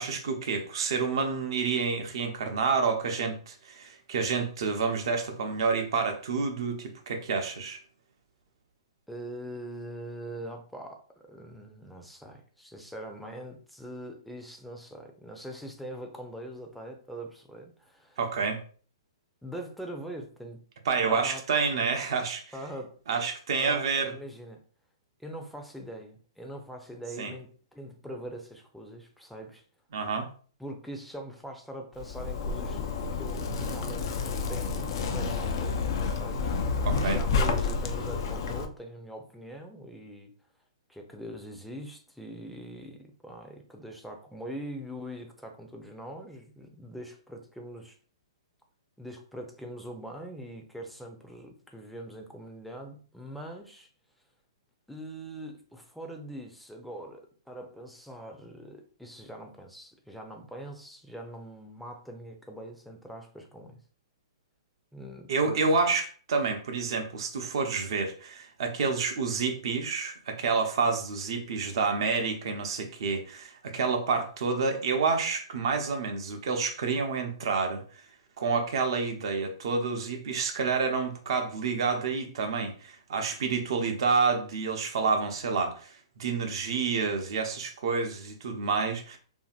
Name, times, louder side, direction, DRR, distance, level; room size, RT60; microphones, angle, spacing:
voice 1, 0.0-7.8 18.2-18.6 20.9-22.5 23.1-24.1 27.2-27.3 29.9-30.3 36.8-37.2 65.3-78.0 78.4-89.2, right 4 dB, 60° right, 0.7 m, -29 dB
voice 2, 9.1-18.2 19.4-20.6 21.1-21.4 22.5-23.0 23.6-24.6 25.2-29.6 30.6-32.8 33.2-34.1 34.5-35.8 36.2-40.3 40.9-48.0 49.0-53.9 54.9-63.8 64.9-65.7, right 1 dB, ahead, 0.6 m, -42 dB
Zipper (clothing), 32.0-38.7, left 4 dB, 55° left, 0.4 m, -29 dB
2.8 x 2.6 x 2.4 m
hypercardioid pair, 120°, 3 cm